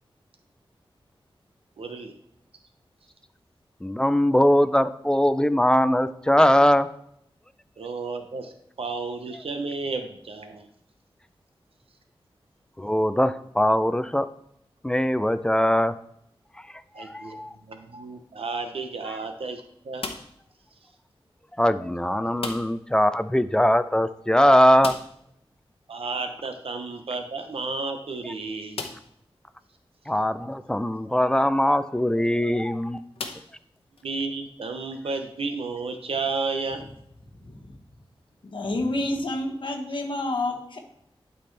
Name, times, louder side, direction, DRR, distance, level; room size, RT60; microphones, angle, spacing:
voice 1, 1.8-2.1 7.8-10.7 16.9-20.1 25.9-28.9 34.0-36.8, right 3 dB, 80° right, 6 dB, 0.7 m, -32 dB
voice 2, 3.8-6.9 12.8-14.3 14.8-15.9 17.0-17.5 19.1-19.2 21.6-24.9 30.1-33.0, equal, 10° left, 12 dB, 0.4 m, -21 dB
sound 1, 20.0-20.5 22.4-22.9 23.2-23.3 23.6-23.7 24.8-25.3 27.1-27.2 27.8-27.9 28.7-29.2 29.9-30.0 32.1-32.3 33.2-34.0, left 4 dB, 85° left, 0.8 m, -37 dB
voice 3, 37.4-37.7 38.4-40.8, left 2 dB, 60° left, 2 dB, 1.2 m, -29 dB
11.5 x 4.2 x 3.3 m, 0.74 s
wide cardioid pair, 105°, 10 cm